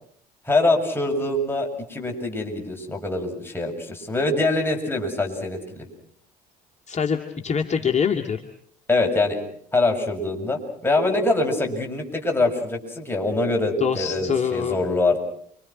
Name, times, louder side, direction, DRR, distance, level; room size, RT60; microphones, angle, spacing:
voice 1, 0.5-5.9 8.9-9.4 9.7-15.2, left 2 dB, 10° left, 2 dB, 7.6 m, -24 dB
voice 2, 6.9-8.4 13.8-14.8, left 6 dB, 35° left, 3 dB, 2.1 m, -24 dB
29.5 x 25.0 x 6.1 m, 0.64 s
figure-of-eight pair, 55°, 21 cm